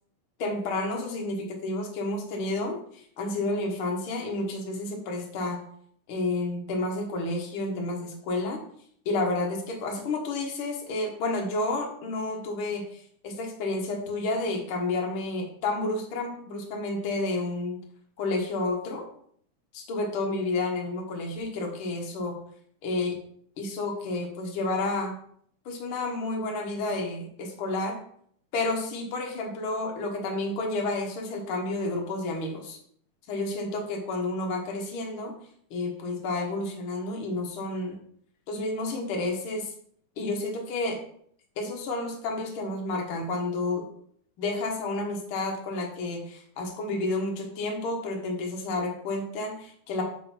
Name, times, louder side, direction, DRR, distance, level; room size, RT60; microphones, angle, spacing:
voice 1, 0.4-5.6 6.1-8.6 9.0-17.8 18.2-19.1 19.7-22.4 22.8-23.2 23.6-25.2 25.6-28.0 28.5-32.8 33.3-35.3 35.7-38.0 38.5-39.7 40.2-41.0 41.6-43.8 44.4-50.0, left 2 dB, 55° left, 1 dB, 1.6 m, -30 dB
5.4 x 3.9 x 5.8 m, 0.63 s
omnidirectional pair, 3.6 m